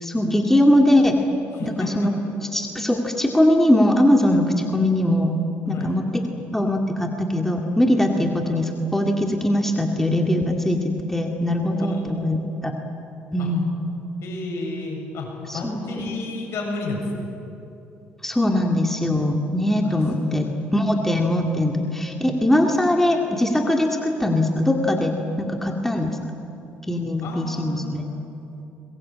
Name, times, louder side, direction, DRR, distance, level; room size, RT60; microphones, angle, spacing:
voice 1, 0.0-1.2 1.6-2.1 2.5-5.3 5.7-6.2 6.5-12.7 13.3-13.7 15.5-16.1 18.2-26.2 26.9-28.1, left 1 dB, 5° left, 2 dB, 2.3 m, -21 dB
voice 2, 1.5-2.1 5.7-5.9 8.2-8.3 11.7-12.4 13.4-13.5 14.2-17.3 19.8-20.5 27.2-28.1, left 3 dB, 65° left, 0 dB, 7.3 m, -32 dB
23.5 x 21.0 x 8.7 m, 2.8 s
supercardioid pair, 85°, 5 cm